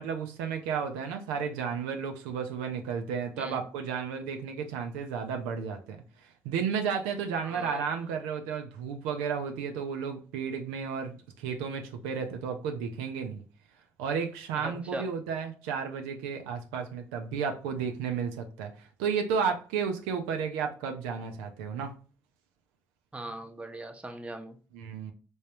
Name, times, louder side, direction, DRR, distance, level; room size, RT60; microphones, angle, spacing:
voice 1, 0.0-6.0 6.4-13.4 14.0-21.9 24.7-25.1, right 6 dB, 85° right, 0.5 m, -33 dB
voice 2, 7.4-7.9 14.6-15.1 23.1-24.6, right 1 dB, 15° right, 0.8 m, -40 dB
3.4 x 3.1 x 2.9 m
hypercardioid pair, 50°, 8 cm